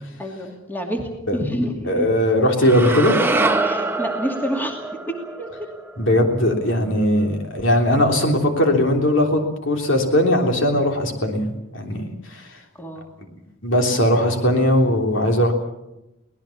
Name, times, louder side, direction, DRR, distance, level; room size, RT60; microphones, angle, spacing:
voice 1, 0.2-2.1 3.6-4.8 5.4-5.7 12.8-13.1, equal, 10° left, 2 dB, 2.5 m, -28 dB
voice 2, 1.8-3.2 6.0-11.5 11.7-12.4 13.6-15.5, left 1 dB, 60° left, 3 dB, 3.3 m, -19 dB
sound 1, 2.6-6.8, right 2 dB, 10° right, 1.1 m, -25 dB
24.0 x 18.5 x 7.2 m, 0.91 s
head